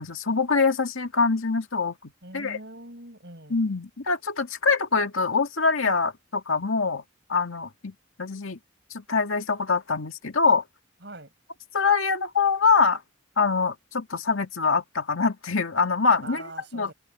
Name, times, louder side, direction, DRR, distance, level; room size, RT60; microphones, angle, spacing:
voice 1, 0.0-2.6 3.5-7.0 7.3-8.6 8.9-10.6 11.7-13.0 13.4-16.9, left 4 dB, 85° left, 2.0 m, -24 dB
voice 2, 2.2-3.6 11.0-11.3 16.2-16.9, right 2 dB, 55° right, 7.0 m, -42 dB
head